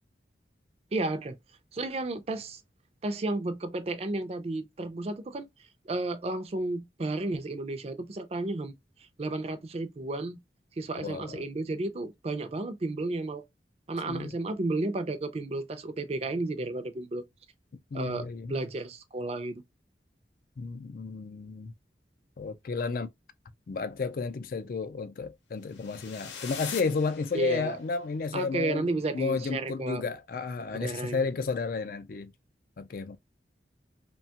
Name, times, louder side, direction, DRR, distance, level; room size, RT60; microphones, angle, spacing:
voice 1, 0.9-1.4 1.7-2.6 3.0-5.5 5.9-8.7 9.2-10.4 10.8-13.4 13.9-17.2 17.9-19.6 27.3-27.8 28.3-30.0 30.7-31.3, right 2 dB, 35° right, 0.4 m, -32 dB
voice 2, 11.0-11.4 14.1-14.3 17.9-18.6 20.6-21.7 22.4-23.1 23.7-28.9 29.1-32.3 32.8-33.2, left 4 dB, 55° left, 0.4 m, -32 dB
sound 1, 25.7-27.9, left 6 dB, 85° left, 0.7 m, -42 dB
2.8 x 2.2 x 2.8 m
head